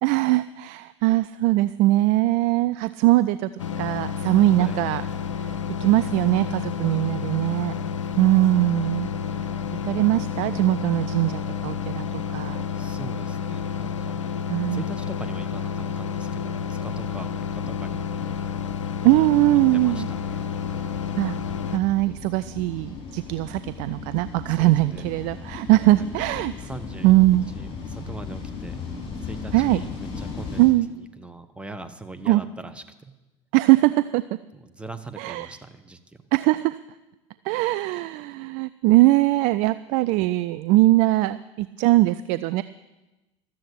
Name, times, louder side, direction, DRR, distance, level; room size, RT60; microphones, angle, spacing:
voice 1, 0.0-3.5 3.8-5.0 5.4-5.5 5.8-7.8 8.2-9.1 9.8-12.6 14.5-14.8 19.0-20.1 21.2-21.4 21.7-26.5 27.0-27.5 29.5-29.8 30.6-30.9 32.3-32.4 33.5-34.2 35.2-35.5 36.3-36.8 37.5-42.6, right 18 dB, 55° right, 14 dB, 0.4 m, -21 dB
sound 1, 3.6-21.8, left 7 dB, 80° left, 0.5 m, -30 dB
voice 2, 12.7-14.2 14.7-18.3 19.7-20.5 24.5-25.0 26.0-26.1 26.7-28.7 29.2-30.6 30.9-33.1 34.5-36.2, right 2 dB, 5° right, 8 dB, 1.2 m, -41 dB
sound 2, 17.0-30.7, left 5 dB, 35° left, 4.8 m, -38 dB
13.0 x 7.7 x 8.6 m, 1.1 s
figure-of-eight pair, 70°, 16 cm